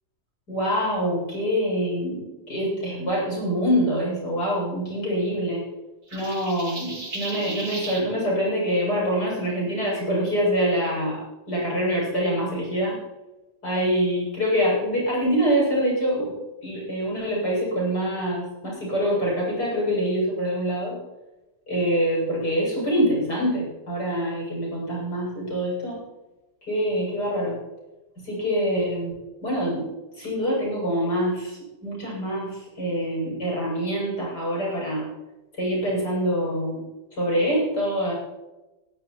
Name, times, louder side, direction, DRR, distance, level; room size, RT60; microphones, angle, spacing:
voice 1, 0.5-5.6 6.1-11.2 11.5-13.0 13.6-16.3 16.6-21.0 21.7-26.0 26.7-27.6 28.2-29.1 29.4-29.9 30.2-35.0 35.5-36.8 37.2-38.1, equal, 70° left, -5 dB, 8.4 m, -25 dB
sound 1, 6.1-8.1, right 2 dB, 60° right, 4.1 m, -35 dB
21.0 x 13.0 x 4.8 m, 1.1 s
omnidirectional pair, 1.8 m